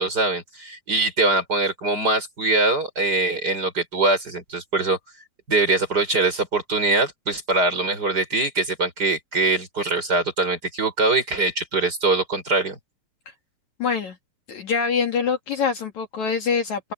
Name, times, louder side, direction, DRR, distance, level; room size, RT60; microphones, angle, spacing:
voice 1, 0.0-5.0 5.5-12.8, right 3 dB, 25° right, 5.5 m, -22 dB
voice 2, 13.8-14.2 14.5-16.9, left 6 dB, 55° left, 3.1 m, -24 dB
open air
omnidirectional pair, 4.1 m